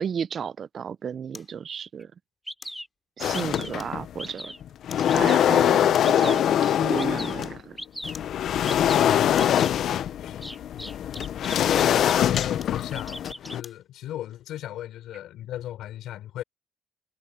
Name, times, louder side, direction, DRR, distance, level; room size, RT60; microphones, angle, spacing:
voice 1, 0.0-2.1 3.2-4.5 5.1-7.8, right 7 dB, 40° right, 0.4 m, -33 dB
sound 1, 1.3-1.6 2.6-2.9 3.8-4.2 4.9-5.1 5.9-6.3 7.4-7.6 8.1-8.4 9.1-9.6 11.0-11.8 12.6-13.9 14.3-14.4, left 4 dB, 25° left, 4.9 m, -48 dB
Bird vocalization bird call bird song, 2.0-2.1 2.5-2.9 3.3-3.8 4.2-4.6 5.1-5.5 6.0-6.5 7.0-7.3 7.8-8.2 8.6-9.0 9.4-9.7 10.4-12.5 12.8-13.6, equal, ahead, 1.7 m, -38 dB
sound 2, 3.2-4.2 4.6-7.6 8.0-13.6, left 10 dB, 60° left, 0.6 m, -23 dB
voice 2, 10.7-11.2 11.5-16.4, left 13 dB, 80° left, 3.7 m, -38 dB
cardioid pair, 135°, 0 cm